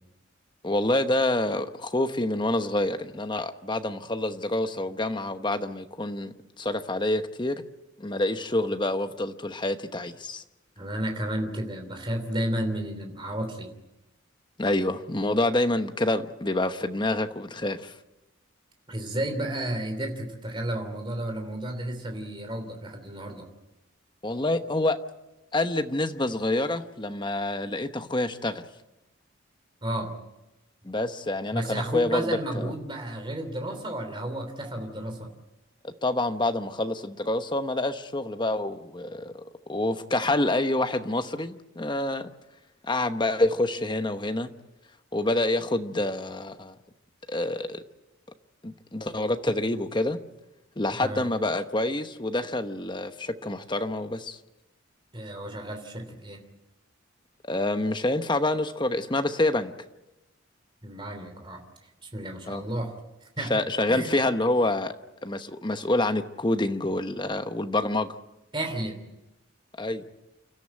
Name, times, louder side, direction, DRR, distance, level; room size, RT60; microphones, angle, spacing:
voice 1, 0.6-7.6 8.0-10.4 14.6-17.9 24.2-25.0 25.5-28.6 30.8-32.7 35.8-42.3 42.8-44.5 45.1-46.7 47.3-47.8 48.6-50.2 50.8-54.4 57.4-59.7 62.5-62.6 63.5-64.9 65.2-68.2 69.8-70.0, left 2 dB, 25° left, 8 dB, 1.0 m, -27 dB
voice 2, 10.8-13.7 18.9-23.5 29.8-30.1 31.5-35.3 51.0-51.3 55.1-56.4 60.8-61.6 62.0-62.9 63.4-63.5 63.9-64.2 68.5-69.0, right 1 dB, 25° right, 5 dB, 3.1 m, -32 dB
29.0 x 13.0 x 9.0 m, 0.99 s
head